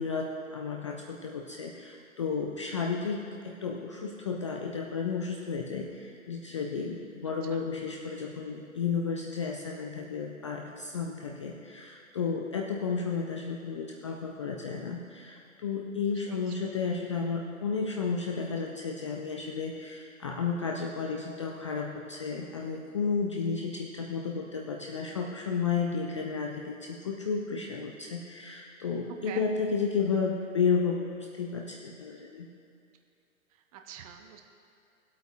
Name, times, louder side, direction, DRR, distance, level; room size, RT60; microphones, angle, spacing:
voice 1, 0.0-31.1 31.4-32.5, left 5 dB, 25° left, 0 dB, 0.4 m, -32 dB
voice 2, 16.1-16.7 29.1-29.5 33.7-34.4, right 8 dB, 25° right, 4 dB, 0.7 m, -45 dB
19.0 x 8.2 x 2.4 m, 2.5 s
figure-of-eight pair, 115°, 41 cm